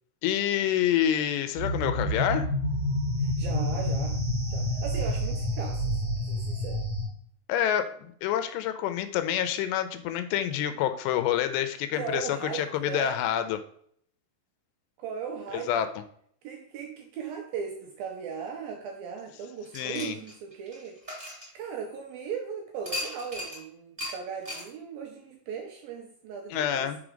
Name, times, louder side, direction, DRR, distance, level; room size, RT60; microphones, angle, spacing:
voice 1, 0.2-2.5 7.5-13.6 15.5-15.9 19.7-20.2 26.5-27.0, left 10 dB, 85° left, 10 dB, 2.8 m, -27 dB
sound 1, 1.6-7.0, left 1 dB, 40° right, 1.7 m, -28 dB
voice 2, 3.2-4.2 4.5-6.8 11.9-13.2 15.0-15.7 16.4-21.0 21.5-26.9, right 6 dB, 80° right, 2 dB, 2.2 m, -38 dB
sound 2, 19.7-22.1 22.8-23.6 24.0-24.1 24.4-24.7, left 1 dB, 10° right, 2.7 m, -37 dB
6.1 x 4.5 x 5.0 m, 0.64 s
omnidirectional pair, 5.0 m